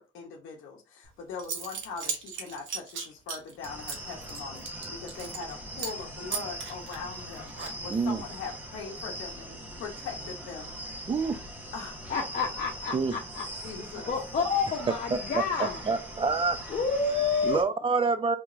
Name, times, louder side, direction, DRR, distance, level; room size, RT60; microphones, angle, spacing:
voice 1, 0.0-11.1 11.7-12.0 13.5-14.1, left 5 dB, 85° left, 0.7 m, -41 dB
Zipper (clothing) / Coin (dropping), 1.0-1.1 1.4-5.5 5.8-6.0 6.3-8.1, right 5 dB, 75° right, 0.9 m, -37 dB
sound 1, 3.6-17.6, right 1 dB, 10° right, 1.0 m, -41 dB
voice 2, 7.9-8.2 11.1-11.4 12.9-13.1 15.1-15.4 15.9-16.6 17.4-18.4, right 4 dB, 25° right, 0.5 m, -27 dB
voice 3, 12.1-13.5 14.1-15.8 16.7-17.6, left 5 dB, 45° left, 0.8 m, -29 dB
3.4 x 2.9 x 2.5 m
cardioid pair, 90°, 20 cm